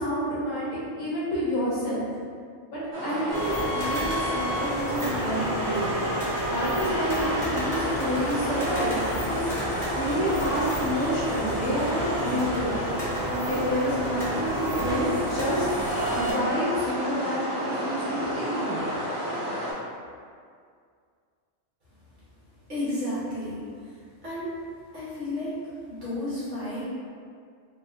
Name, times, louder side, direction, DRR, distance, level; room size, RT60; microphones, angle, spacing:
voice 1, 0.0-2.0 2.7-5.9 6.5-9.5 9.9-12.8 13.3-15.7 16.1-18.8, equal, 70° left, -7 dB, 1.2 m, -29 dB
sound 1, 2.9-19.7, equal, 25° right, 1.2 m, -31 dB
sound 2, 3.3-16.3, right 1 dB, ahead, 0.8 m, -31 dB
voice 2, 22.7-23.6 24.2-24.5 24.9-25.5 26.0-26.8, left 1 dB, 60° right, -11 dB, 1.5 m, -31 dB
4.0 x 2.2 x 2.5 m, 2.2 s
omnidirectional pair, 1.4 m